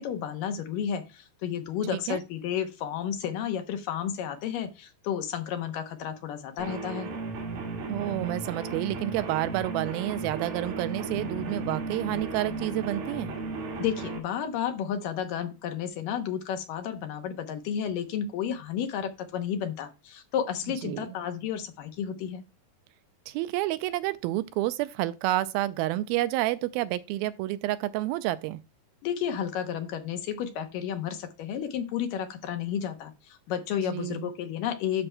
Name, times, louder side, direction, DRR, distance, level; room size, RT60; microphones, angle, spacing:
voice 1, 0.0-7.1 13.8-22.4 29.0-35.1, left 8 dB, 75° left, 2.4 m, -32 dB
sound 1, 6.6-14.2, right 3 dB, 70° right, 3.6 m, -35 dB
voice 2, 7.9-13.3 20.8-21.1 23.3-28.6 33.8-34.3, right 16 dB, 85° right, 2.4 m, -29 dB
12.0 x 6.0 x 2.2 m
omnidirectional pair, 4.3 m